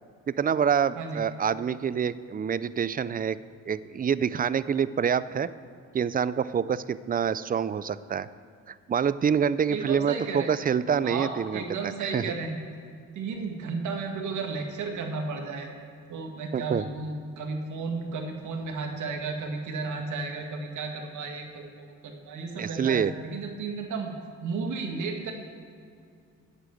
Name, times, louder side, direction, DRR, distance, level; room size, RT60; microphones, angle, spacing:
voice 1, 0.3-3.4 3.7-5.5 5.9-8.3 8.7-12.3 16.5-16.9 22.6-23.1, right 7 dB, 30° right, 16 dB, 0.4 m, -26 dB
voice 2, 9.7-10.5 11.0-12.6 13.1-15.7 16.1-24.1 24.4-25.3, right 4 dB, 75° right, 3 dB, 1.9 m, -33 dB
11.5 x 8.3 x 7.8 m, 2.3 s
cardioid pair, 90°, 30 cm